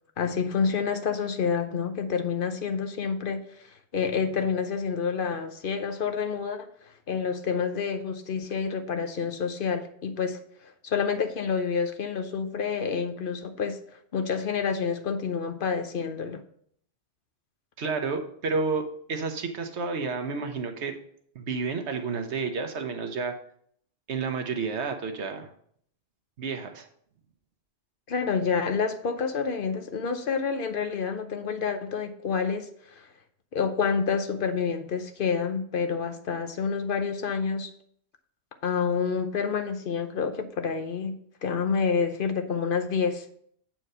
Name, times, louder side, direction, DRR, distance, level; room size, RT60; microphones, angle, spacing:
voice 1, 0.2-3.7 3.9-6.7 7.1-10.4 10.8-13.8 14.1-16.4 28.1-33.1 33.5-37.7 38.6-43.3, left 6 dB, 55° left, 8 dB, 0.8 m, -28 dB
voice 2, 17.8-20.9 21.3-23.3 24.1-25.5 26.4-26.9, right 4 dB, 85° right, 6 dB, 1.2 m, -30 dB
7.8 x 4.5 x 5.5 m, 0.65 s
omnidirectional pair, 1.1 m